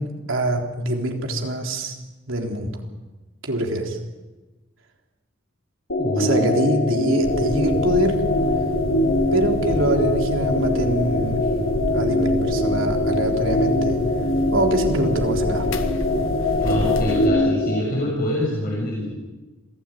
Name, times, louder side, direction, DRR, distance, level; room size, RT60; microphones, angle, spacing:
voice 1, 0.0-2.0 2.3-2.8 3.4-4.0 6.2-8.2 9.3-11.5 11.9-14.0 14.5-15.7, right 1 dB, 80° right, 2 dB, 3.7 m, -24 dB
sound 1, 5.9-17.8, left 1 dB, 65° left, 3.3 m, -23 dB
voice 2, 6.0-6.5 16.6-19.1, left 1 dB, 45° left, -3 dB, 6.7 m, -25 dB
sound 2, 7.2-17.3, left 1 dB, 85° left, 1.6 m, -29 dB
27.0 x 17.0 x 9.1 m, 1.2 s
head